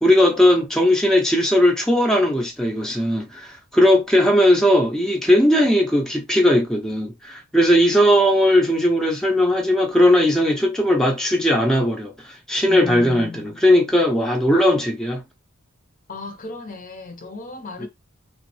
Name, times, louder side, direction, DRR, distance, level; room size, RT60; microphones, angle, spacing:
voice 1, 0.0-15.2 17.8-17.9, left 1 dB, 5° left, 0.6 m, -18 dB
voice 2, 12.7-14.0 16.1-17.9, left 3 dB, 40° left, 0.7 m, -35 dB
3.7 x 3.0 x 3.0 m
head